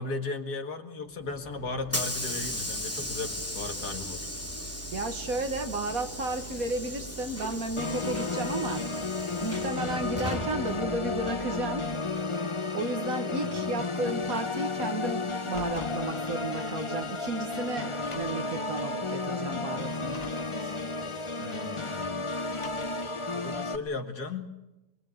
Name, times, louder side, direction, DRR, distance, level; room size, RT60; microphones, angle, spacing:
voice 1, 0.0-4.3 13.4-13.7 21.4-22.5 23.3-24.5, left 3 dB, 60° left, 6 dB, 2.4 m, -36 dB
Hiss / Sliding door, 1.2-12.1, equal, 10° left, 3.0 m, -37 dB
voice 2, 4.9-8.9 9.4-11.9 12.7-20.3 20.6-20.8, right 2 dB, 55° right, 7 dB, 2.0 m, -33 dB
Organ, 7.8-23.8, left 3 dB, 25° left, 0.8 m, -32 dB
Car, 15.3-16.1 17.1-17.2 17.9-18.5 19.9-20.6 22.4-23.1, left 5 dB, 40° left, 1.2 m, -45 dB
23.5 x 22.0 x 7.9 m, 0.97 s
omnidirectional pair, 1.9 m